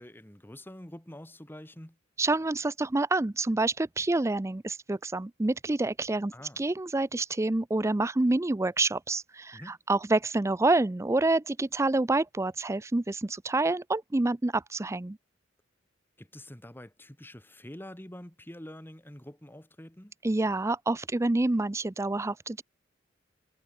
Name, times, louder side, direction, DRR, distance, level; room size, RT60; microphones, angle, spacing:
voice 1, 0.0-2.0 6.3-6.6 9.5-9.8 16.2-20.1, left 1 dB, 10° left, 1.8 m, -46 dB
voice 2, 2.2-15.2 20.2-22.6, right 2 dB, 15° right, 0.4 m, -27 dB
head